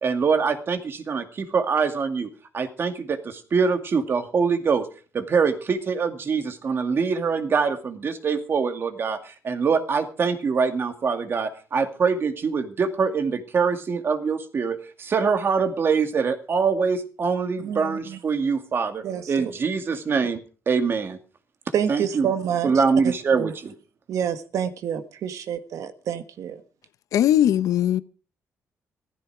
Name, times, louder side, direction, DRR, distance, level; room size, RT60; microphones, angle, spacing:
voice 1, 0.0-2.3 2.5-4.9 5.1-21.2 21.9-22.3 22.6-23.7, right 5 dB, 45° right, 2.3 m, -24 dB
voice 2, 17.6-18.2 19.0-19.5 21.7-22.7 23.0-23.5 24.1-26.6, right 8 dB, 75° right, 1.6 m, -28 dB
voice 3, 27.1-28.0, left 11 dB, 85° left, 0.7 m, -19 dB
16.0 x 14.0 x 4.9 m
cardioid pair, 120°, 6 cm